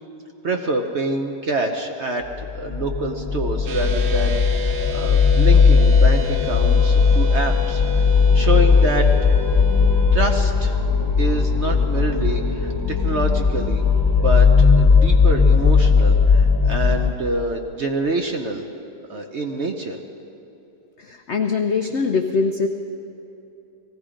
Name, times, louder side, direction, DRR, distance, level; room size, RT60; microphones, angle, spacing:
voice 1, 0.4-7.8 8.3-9.1 10.1-10.8 11.2-13.8 14.1-18.6 19.1-20.0, right 2 dB, 55° right, 3 dB, 0.8 m, -26 dB
sound 1, 2.3-17.1, left 5 dB, 25° left, 0.5 m, -17 dB
sound 2, 3.7-10.4, left 6 dB, 80° right, 1.8 m, -31 dB
voice 2, 21.0-22.7, left 4 dB, 70° left, 5 dB, 0.6 m, -22 dB
18.5 x 15.5 x 5.0 m, 2.8 s
omnidirectional pair, 1.9 m